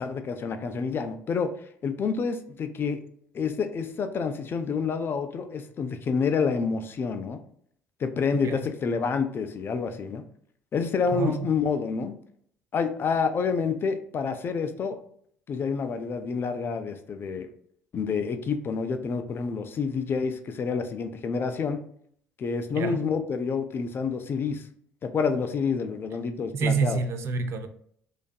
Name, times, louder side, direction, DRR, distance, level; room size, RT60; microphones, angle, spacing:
voice 1, 0.0-1.5 1.8-3.0 3.3-7.4 8.0-10.2 10.7-12.1 12.7-15.0 15.5-17.5 17.9-21.8 22.4-24.6 25.0-27.0, left 5 dB, 40° left, 8 dB, 0.3 m, -28 dB
voice 2, 11.1-11.5 22.7-23.0 26.5-27.7, right 5 dB, 50° right, 8 dB, 0.4 m, -28 dB
2.5 x 2.3 x 2.2 m, 0.63 s
hypercardioid pair, 60°, 6 cm